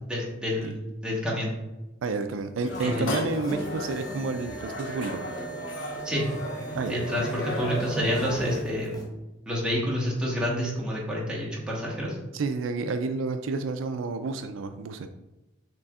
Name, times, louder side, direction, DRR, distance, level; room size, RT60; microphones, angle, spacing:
voice 1, 0.1-0.7 1.0-1.5 2.8-3.1 6.0-6.2 6.9-9.0 9.5-12.2, equal, 5° right, -5 dB, 1.2 m, -28 dB
voice 2, 2.0-5.2 6.7-6.9 12.3-15.1, right 3 dB, 80° right, 9 dB, 0.4 m, -30 dB
sound 1, 2.6-8.6, left 2 dB, 75° left, 1.1 m, -35 dB
sound 2, 2.6-9.0, right 4 dB, 20° left, 0.7 m, -40 dB
6.6 x 3.3 x 2.4 m, 0.99 s
head